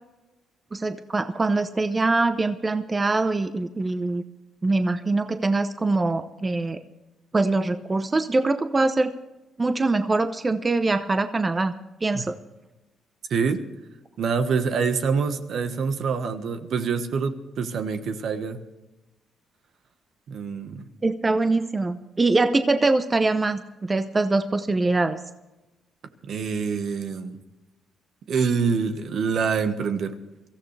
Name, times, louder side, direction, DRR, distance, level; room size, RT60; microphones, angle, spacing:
voice 1, 0.7-4.2 4.6-6.8 7.3-9.1 9.6-11.7 12.0-12.4 21.0-25.2, right 3 dB, 25° right, 10 dB, 0.7 m, -23 dB
voice 2, 14.2-18.6 20.3-20.8 26.2-27.4 28.3-30.1, right 5 dB, 65° right, 8 dB, 1.3 m, -26 dB
23.0 x 15.0 x 3.3 m, 1.0 s
cardioid pair, 90°, 0 cm